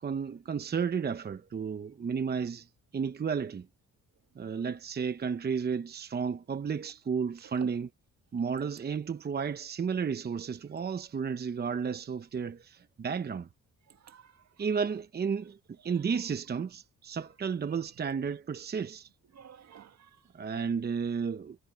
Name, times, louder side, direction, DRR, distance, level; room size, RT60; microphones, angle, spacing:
voice 1, 0.0-2.7 2.9-3.7 4.4-7.9 8.3-13.5 14.6-15.6 15.8-19.1 20.3-21.6, right 6 dB, 35° right, 0.9 m, -32 dB
voice 2, 13.9-14.8 15.8-16.0 17.7-17.8 19.3-20.2, right 8 dB, 60° right, 1.8 m, -52 dB
cardioid pair, 90°, 30 cm